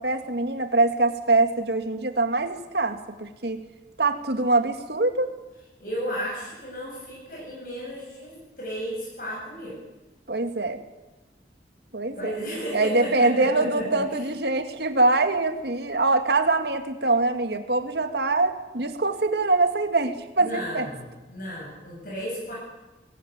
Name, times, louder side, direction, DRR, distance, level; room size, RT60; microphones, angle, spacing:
voice 1, 0.0-3.6 4.0-5.3 10.3-10.8 11.9-12.4 12.7-20.9, right 2 dB, 70° right, 7 dB, 2.2 m, -24 dB
voice 2, 5.8-9.8 12.2-14.0 20.4-22.5, equal, 50° left, -3 dB, 7.8 m, -33 dB
20.5 x 18.0 x 9.6 m, 1.1 s
head